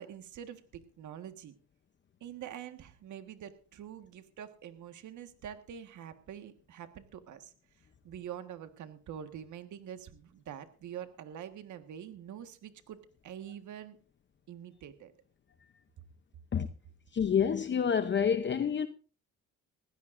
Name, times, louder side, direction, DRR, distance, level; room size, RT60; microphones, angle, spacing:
voice 1, 0.0-1.5 2.2-7.5 8.0-13.0 13.2-14.0 14.5-15.1, right 9 dB, 75° right, 1.7 m, -45 dB
voice 2, 17.1-18.9, left 7 dB, 40° left, 0.8 m, -28 dB
21.0 x 16.0 x 2.6 m
cardioid pair, 90°, 30 cm